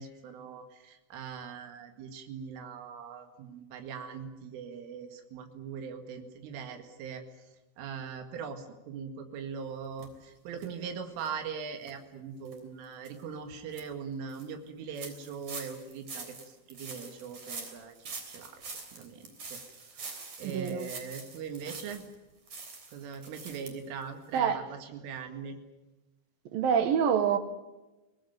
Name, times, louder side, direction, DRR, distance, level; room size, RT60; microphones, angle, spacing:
voice 1, 0.0-7.2 7.8-17.9 18.3-18.6 18.9-19.6 19.9-22.1 22.9-25.6, right 6 dB, 90° right, 4.6 m, -41 dB
sound 1, 10.0-10.1 10.6-10.7 11.2-11.3 11.8-11.9 12.4-12.6 13.0-13.2 13.5-13.8 14.3-14.4 15.0-22.1 22.5-23.7 24.0-24.1 24.4-24.5, right 4 dB, 40° right, 4.4 m, -44 dB
voice 2, 20.4-20.9 24.3-24.7 26.5-27.4, right 7 dB, 65° right, 2.4 m, -26 dB
23.0 x 19.5 x 9.3 m
omnidirectional pair, 5.5 m